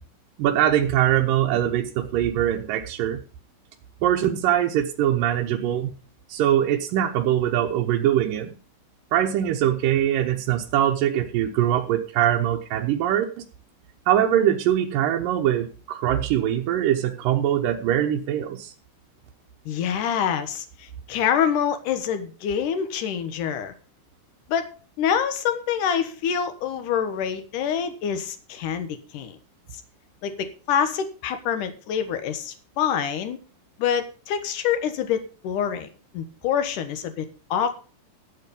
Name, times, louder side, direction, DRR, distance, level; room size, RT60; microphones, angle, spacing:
voice 1, 0.4-3.2 4.0-5.9 6.3-8.6 9.1-13.2 14.1-18.7, right 11 dB, 85° right, 2 dB, 2.7 m, -22 dB
voice 2, 19.7-23.7 24.5-24.7 25.0-29.4 30.2-33.4 33.8-35.9 36.1-37.7, left 8 dB, 75° left, 9 dB, 2.8 m, -26 dB
14.0 x 7.6 x 5.3 m, 0.37 s
omnidirectional pair, 3.8 m